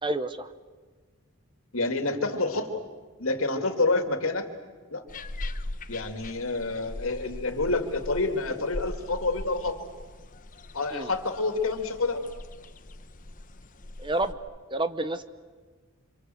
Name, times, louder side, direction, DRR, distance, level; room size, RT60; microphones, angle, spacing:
voice 1, 0.0-0.5 10.9-11.1 14.0-14.4 14.7-15.2, right 2 dB, 20° right, 12 dB, 0.9 m, -29 dB
voice 2, 1.7-2.8 3.2-4.5 4.9-5.0 5.9-9.9 10.7-12.2, left 3 dB, 70° left, 6 dB, 2.7 m, -28 dB
sound 1, 5.1-14.3, left 1 dB, 40° left, 1.0 m, -41 dB
28.0 x 26.0 x 7.9 m, 1.4 s
head